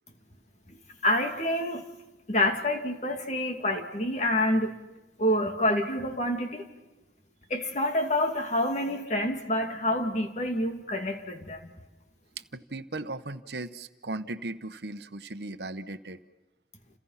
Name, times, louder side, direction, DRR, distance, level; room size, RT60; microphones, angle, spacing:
voice 1, 1.0-1.8 2.3-4.8 5.2-6.7 7.5-11.7, left 1 dB, 40° left, 4 dB, 2.5 m, -27 dB
voice 2, 12.5-16.2, right 2 dB, 70° right, 10 dB, 1.1 m, -37 dB
30.0 x 29.0 x 5.8 m, 1.0 s
head